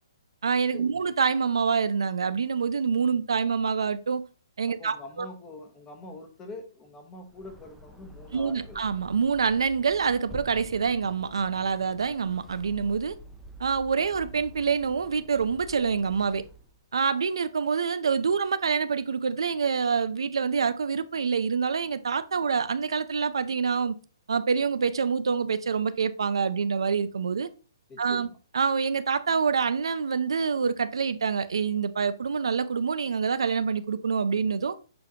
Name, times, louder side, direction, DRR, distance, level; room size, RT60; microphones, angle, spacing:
voice 1, 0.4-4.3 4.6-5.3 8.3-13.1 13.6-16.4 16.9-23.9 24.3-27.5 28.0-28.3 28.5-34.8, right 5 dB, 85° right, 0.6 m, -26 dB
voice 2, 4.7-8.8 14.0-14.1 27.9-28.4, left 2 dB, 15° left, 0.9 m, -44 dB
sound 1, 7.2-16.8, equal, ahead, 0.5 m, -48 dB
7.0 x 5.1 x 2.8 m
hypercardioid pair, 160°, 3 cm